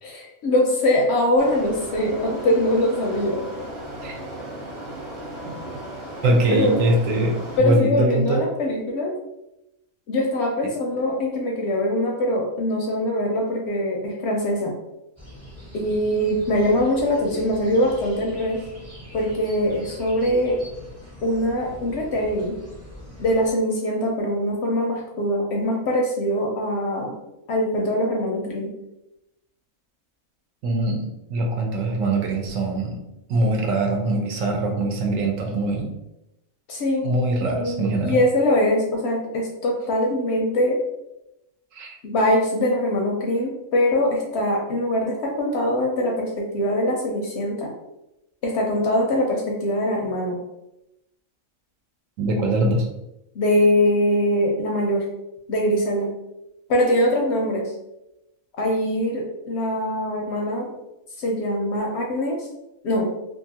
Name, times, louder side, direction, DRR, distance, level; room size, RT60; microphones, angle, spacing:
voice 1, 0.0-3.5 6.5-6.8 7.6-9.1 10.1-14.7 15.7-18.6 19.1-20.6 21.2-22.6 23.2-27.1 27.5-28.7 36.7-37.1 37.4-40.8 42.0-47.7 48.4-50.4 53.3-55.1 55.5-56.1 56.7-57.7 58.6-60.7 61.2-62.5 62.8-63.1, left 1 dB, 65° left, 0 dB, 0.7 m, -22 dB
sound 1, 1.4-7.6, right 1 dB, 55° right, 0.8 m, -36 dB
voice 2, 6.2-7.3 7.6-8.4 30.6-33.0 33.3-35.9 37.0-38.2 41.7-42.0 52.2-52.8, right 2 dB, 75° right, 1 dB, 1.0 m, -22 dB
sound 2, 15.2-23.5, left 1 dB, 15° right, 0.7 m, -42 dB
2.7 x 2.5 x 2.7 m, 0.89 s
omnidirectional pair, 1.4 m